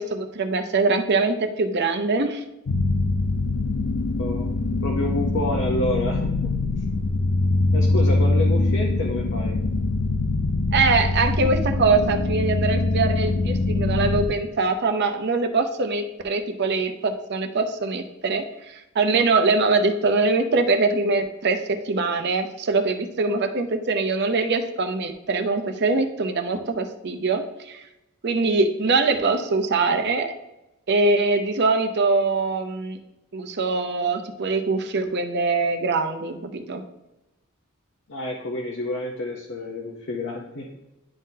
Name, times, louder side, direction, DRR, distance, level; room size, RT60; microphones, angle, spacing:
voice 1, 0.0-2.4 10.7-27.4 27.7-27.8 28.2-30.3 30.9-33.0 33.3-36.8, right 3 dB, 55° right, 6 dB, 0.7 m, -23 dB
sound 1, 2.7-14.3, left 2 dB, 85° left, 0.5 m, -23 dB
voice 2, 4.8-6.5 7.7-9.6 38.1-40.8, left 1 dB, 60° left, -1 dB, 0.8 m, -29 dB
10.5 x 3.7 x 2.8 m, 0.94 s
head